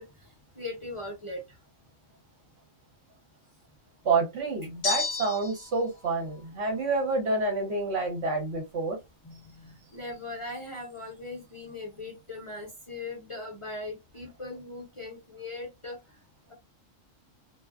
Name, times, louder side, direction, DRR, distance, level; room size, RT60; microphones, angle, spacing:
voice 1, 0.0-1.6 9.2-16.2, left 2 dB, 30° left, 0.7 m, -40 dB
voice 2, 4.0-9.0, right 3 dB, 60° right, 1.1 m, -28 dB
sound 1, 4.8-5.8, left 5 dB, 70° left, 0.3 m, -31 dB
2.5 x 2.3 x 2.3 m
omnidirectional pair, 1.4 m